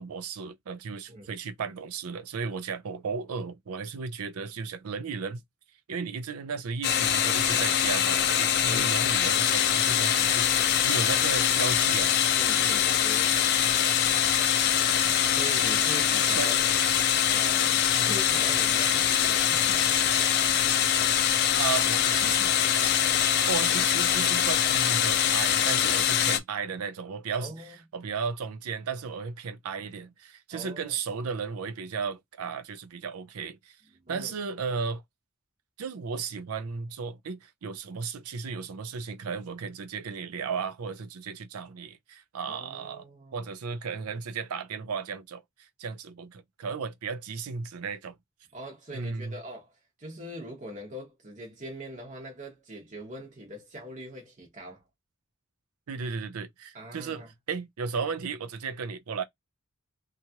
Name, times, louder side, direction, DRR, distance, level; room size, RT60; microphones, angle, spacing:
voice 1, 0.0-5.4 5.9-12.1 15.4-15.5 16.3-16.6 18.0-18.1 21.3-22.5 22.8-23.2 23.5-27.7 27.9-33.8 34.1-35.0 35.8-43.0 43.3-48.2 48.9-49.4 55.9-59.2, right 5 dB, 85° right, 0.5 m, -35 dB
sound 1, 6.8-26.4, left 9 dB, 50° left, 0.4 m, -23 dB
voice 2, 12.3-13.4 15.3-16.6 17.2-17.8 18.0-20.0 27.4-27.8 30.5-30.9 33.9-34.3 42.5-43.5 48.5-49.7 50.0-54.8 56.7-57.3, right 1 dB, 35° right, 0.9 m, -42 dB
2.9 x 2.4 x 2.8 m
head